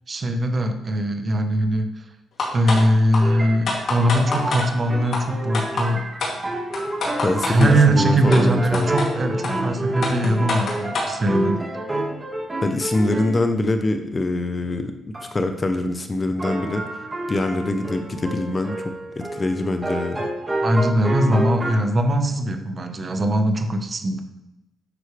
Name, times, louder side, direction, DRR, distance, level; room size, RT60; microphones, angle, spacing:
voice 1, 0.1-1.9 2.5-6.1 7.4-11.6 20.6-24.2, right 1 dB, 35° right, 6 dB, 1.1 m, -21 dB
sound 1, 2.4-2.8 3.1-3.2 3.7-4.7 5.1-5.2 5.5-5.9 6.2-6.3 6.7-7.7 8.3-8.4 8.7-9.1 9.4-9.5 10.0-11.1, left 3 dB, 55° left, 2.8 m, -25 dB
sound 2, 3.2-13.4 15.1-15.3 16.4-21.7, right 1 dB, 20° right, 1.9 m, -28 dB
voice 2, 7.2-8.9 12.6-14.9 15.3-17.0 17.3-18.8 19.1-20.3, left 2 dB, 25° left, 7 dB, 0.8 m, -24 dB
10.0 x 6.3 x 3.4 m, 0.90 s
cardioid pair, 90°, 0 cm